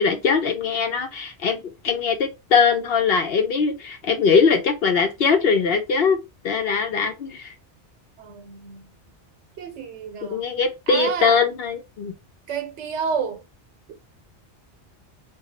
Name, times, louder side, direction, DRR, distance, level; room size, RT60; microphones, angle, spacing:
voice 1, 0.0-6.2 6.4-7.5 10.2-12.1, left 5 dB, 60° left, 0.8 m, -21 dB
voice 2, 8.2-8.9 9.6-10.5 10.9-11.4 12.5-13.4 13.9-14.0, right 6 dB, 85° right, 1.0 m, -30 dB
2.6 x 2.3 x 3.9 m
omnidirectional pair, 1.2 m